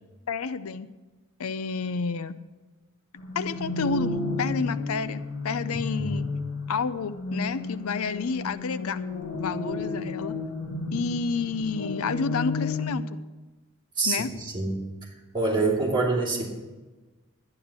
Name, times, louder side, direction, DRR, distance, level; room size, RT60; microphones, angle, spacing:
voice 1, 0.3-0.9 1.4-2.4 3.3-4.1 4.4-6.3 6.7-9.0 9.4-10.4 10.9-13.0 14.1-14.3, left 5 dB, 80° left, 14 dB, 0.5 m, -30 dB
sound 1, 3.2-12.9, left 3 dB, 60° left, 1.6 m, -32 dB
voice 2, 14.0-16.5, right 3 dB, 20° right, -4 dB, 2.8 m, -27 dB
12.0 x 9.9 x 6.0 m, 1.2 s
head